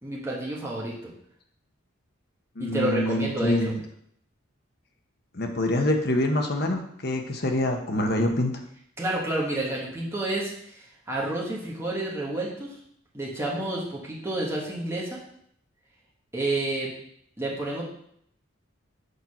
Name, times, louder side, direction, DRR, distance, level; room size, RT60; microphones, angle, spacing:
voice 1, 0.0-1.1 2.6-3.7 9.0-12.8 13.1-15.2 16.3-16.9 17.4-17.8, right 1 dB, 15° right, -5 dB, 1.8 m, -30 dB
voice 2, 2.6-3.8 5.3-8.5, left 1 dB, 50° left, 3 dB, 1.0 m, -25 dB
6.6 x 4.5 x 5.7 m, 0.69 s
head